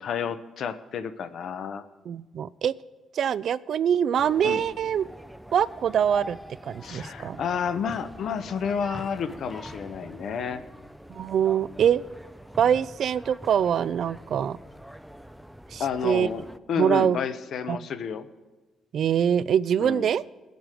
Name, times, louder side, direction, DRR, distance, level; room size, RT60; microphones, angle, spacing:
voice 1, 0.0-1.8 4.4-4.6 6.8-10.6 15.8-18.3 19.8-20.1, left 7 dB, 65° left, 11 dB, 0.8 m, -30 dB
voice 2, 2.1-2.7 3.1-5.0 5.5-6.4 6.6-7.4 11.1-12.0 12.6-14.6 15.7-16.3 16.8-17.2 17.7-17.9 18.9-20.2, right 8 dB, 65° right, 18 dB, 0.4 m, -24 dB
sound 1, 4.2-16.6, equal, ahead, 0.5 m, -44 dB
19.0 x 7.9 x 5.0 m, 1.2 s
cardioid pair, 90°, 0 cm